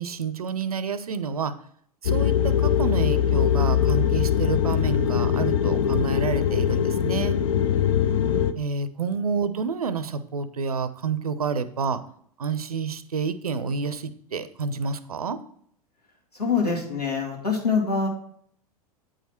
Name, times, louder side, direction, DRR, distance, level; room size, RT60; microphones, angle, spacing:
voice 1, 0.0-1.6 2.0-7.4 8.5-12.0 12.4-15.4, right 5 dB, 75° right, 15 dB, 0.6 m, -29 dB
sound 1, 2.1-8.5, left 9 dB, 55° left, 0.6 m, -22 dB
voice 2, 16.3-18.1, left 5 dB, 85° left, -2 dB, 2.1 m, -24 dB
8.9 x 4.9 x 4.3 m, 0.64 s
figure-of-eight pair, 90°, 19 cm